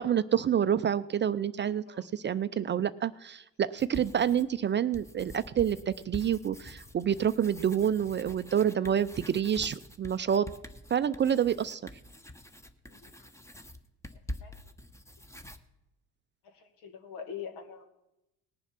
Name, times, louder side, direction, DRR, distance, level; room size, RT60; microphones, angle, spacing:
voice 1, 0.0-10.5 10.9-11.8, right 9 dB, 30° right, 14 dB, 0.4 m, -28 dB
sound 1, 3.8-4.6 4.9-15.6, left 1 dB, 5° left, 0.9 m, -46 dB
voice 2, 16.8-17.8, left 7 dB, 75° left, 6 dB, 2.1 m, -42 dB
19.0 x 7.2 x 5.8 m, 0.90 s
supercardioid pair, 75°, 40 cm